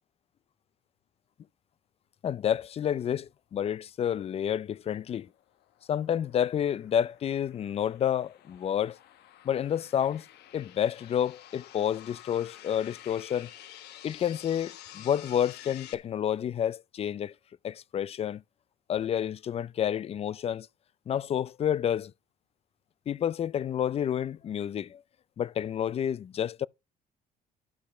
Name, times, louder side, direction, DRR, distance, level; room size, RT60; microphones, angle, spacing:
voice 1, 2.2-5.3 5.9-9.0 9.4-10.3 10.5-13.5 14.0-17.3 17.6-18.4 18.9-20.7 21.1-22.1 23.1-25.0 25.4-26.7, left 9 dB, 35° left, 0.4 m, -29 dB
sound 1, 5.1-16.0, left 12 dB, 75° left, 1.4 m, -50 dB
12.0 x 5.4 x 5.0 m
cardioid pair, 110°, 17 cm